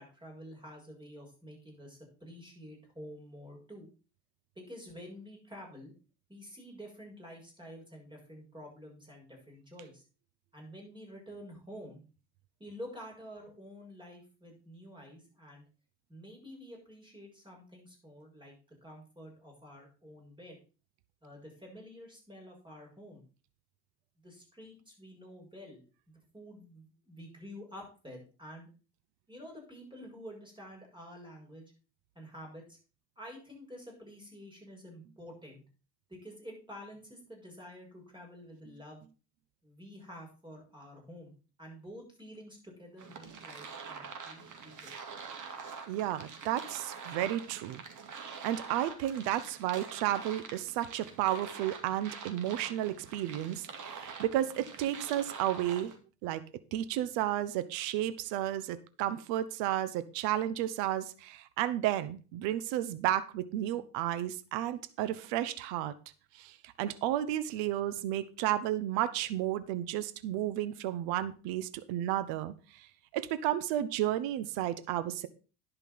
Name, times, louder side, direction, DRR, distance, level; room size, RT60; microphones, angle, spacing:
voice 1, 0.0-3.9 4.5-5.9 6.3-10.0 10.5-12.0 12.6-15.7 16.1-18.6 18.8-20.6 21.2-23.2 24.2-28.7 29.3-31.7 32.1-32.8 33.2-35.6 36.1-39.0 39.6-44.9, equal, 10° right, 0 dB, 6.5 m, -49 dB
sound 1, 43.0-56.0, right 5 dB, 35° right, 2.4 m, -45 dB
voice 2, 45.9-47.8 48.4-55.9 56.2-56.4 56.7-65.9 66.3-72.9 73.1-75.3, right 12 dB, 60° right, 14 dB, 1.1 m, -32 dB
11.0 x 5.6 x 5.8 m, 0.35 s
hypercardioid pair, 85°, 50 cm